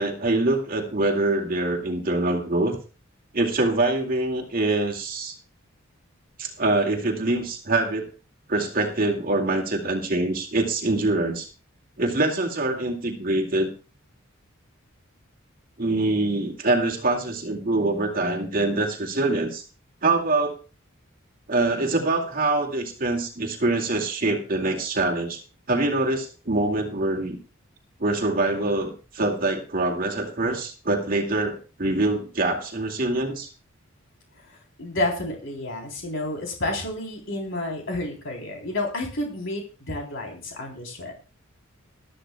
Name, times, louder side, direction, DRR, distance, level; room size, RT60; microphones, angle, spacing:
voice 1, 0.0-2.8 3.3-5.3 6.4-8.1 8.5-11.5 12.0-13.7 15.8-19.6 20.0-20.6 21.5-25.4 25.7-27.4 28.0-33.5, right 2 dB, 45° right, 1 dB, 2.2 m, -24 dB
voice 2, 34.5-41.1, left 1 dB, 60° left, 0 dB, 3.6 m, -30 dB
20.0 x 13.0 x 2.3 m, 0.34 s
head